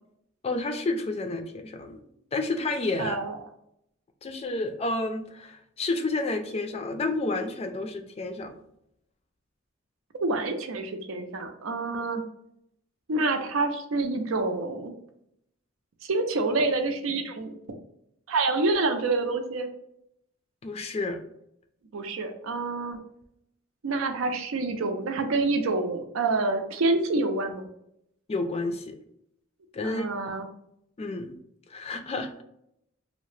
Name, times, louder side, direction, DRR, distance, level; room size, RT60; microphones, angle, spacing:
voice 1, 0.4-2.0 2.3-3.2 4.2-8.5 20.6-21.2 28.3-29.0 29.7-30.1 31.0-31.3 31.7-32.3, left 2 dB, 30° left, 6 dB, 0.3 m, -30 dB
voice 2, 3.0-3.4 10.2-12.2 13.1-14.9 16.0-17.5 18.3-19.7 21.9-23.0 23.8-27.7 29.8-30.5, right 3 dB, 85° right, 6 dB, 0.5 m, -27 dB
2.7 x 2.0 x 3.1 m, 0.76 s
head